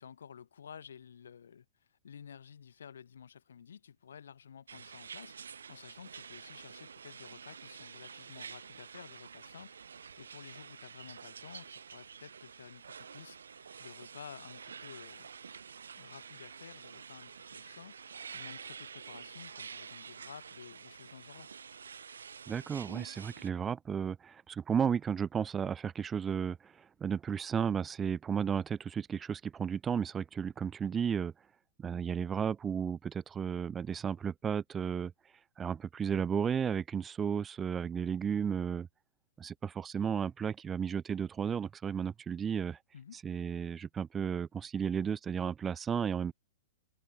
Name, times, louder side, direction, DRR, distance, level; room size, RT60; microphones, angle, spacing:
voice 1, 0.0-15.3 16.0-18.0 18.3-21.5 42.9-43.2, left 7 dB, 80° left, 5.7 m, -52 dB
sound 1, 4.7-23.5, right 6 dB, 85° right, 5.0 m, -49 dB
voice 2, 22.5-31.3 31.8-35.1 35.6-38.9 39.4-42.8 43.2-46.3, right 7 dB, 20° right, 1.1 m, -33 dB
open air
hypercardioid pair, 120°, 0 cm